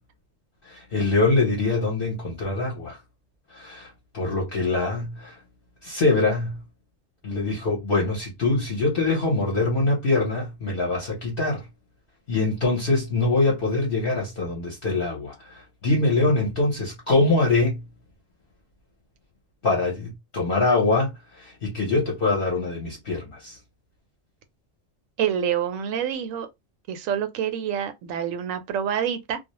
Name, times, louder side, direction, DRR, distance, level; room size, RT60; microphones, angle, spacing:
voice 1, 0.6-3.0 3.5-5.3 5.8-6.6 7.2-11.6 12.3-17.8 19.6-23.6, left 3 dB, 50° left, 0.8 m, -24 dB
voice 2, 25.2-26.5 26.9-29.4, right 9 dB, 85° right, 1.0 m, -27 dB
2.3 x 2.0 x 2.8 m
omnidirectional pair, 1.3 m